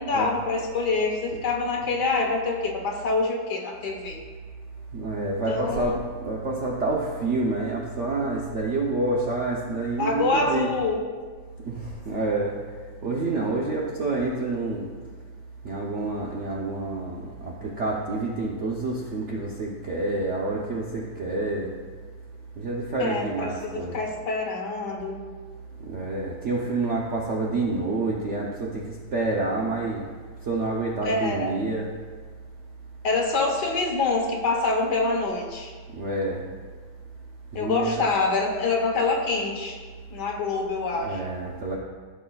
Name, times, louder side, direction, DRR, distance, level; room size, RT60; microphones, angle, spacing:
voice 1, 0.0-4.2 5.5-6.0 10.0-11.0 23.0-25.2 31.0-31.5 33.0-35.7 37.5-39.8 40.1-41.2, left 3 dB, 65° left, 1 dB, 1.6 m, -26 dB
voice 2, 4.9-10.7 11.7-12.6 13.0-14.9 15.6-21.7 22.6-24.0 25.9-30.1 30.4-31.9 35.9-36.4 37.5-38.0 41.0-41.8, right 2 dB, 55° right, -2 dB, 0.8 m, -28 dB
14.5 x 6.2 x 2.3 m, 1.5 s
omnidirectional pair, 2.1 m